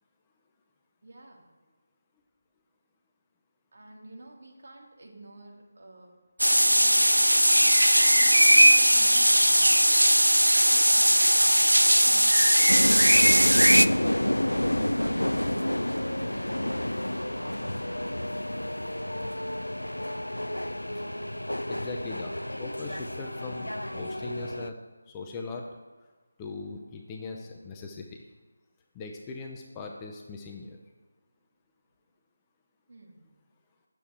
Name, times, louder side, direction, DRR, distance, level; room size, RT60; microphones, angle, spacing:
voice 1, 1.0-1.5 3.7-6.1 6.4-7.5 7.9-9.8 10.7-14.1 15.0-18.5 32.9-33.3, right 2 dB, 50° right, -1 dB, 1.9 m, -47 dB
sound 1, 6.4-13.9, equal, 90° right, 0.3 m, -19 dB
sound 2, 12.7-24.7, left 1 dB, 85° left, 0.4 m, -30 dB
voice 2, 21.7-24.8 25.1-25.6 26.4-28.2 28.9-30.8, left 3 dB, 15° left, 1 dB, 0.6 m, -40 dB
9.2 x 7.5 x 3.4 m, 1.3 s
figure-of-eight pair, 160°, 0 cm